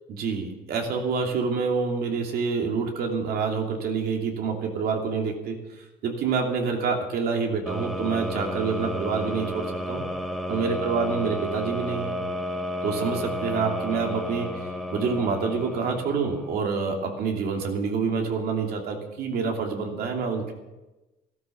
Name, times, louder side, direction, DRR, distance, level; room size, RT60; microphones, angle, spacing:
voice 1, 0.1-10.0 10.5-12.2 12.8-14.5 14.9-20.5, right 5 dB, 65° right, 2 dB, 2.9 m, -27 dB
sound 1, 7.7-16.6, equal, ahead, 1.5 m, -32 dB
13.0 x 13.0 x 7.0 m, 1.1 s
cardioid pair, 110°, 17 cm